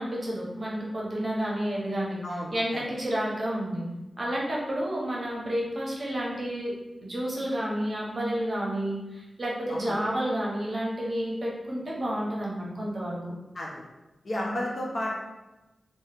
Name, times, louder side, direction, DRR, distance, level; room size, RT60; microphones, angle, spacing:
voice 1, 0.0-2.2 2.5-3.8 4.2-6.7 7.0-13.2 14.3-14.5, equal, 45° right, -4 dB, 0.7 m, -30 dB
voice 2, 2.2-2.8 9.7-9.8 13.5-13.8 14.2-15.2, left 1 dB, 50° left, -4 dB, 0.7 m, -32 dB
2.8 x 2.1 x 3.3 m, 1.0 s
wide cardioid pair, 90°, 0 cm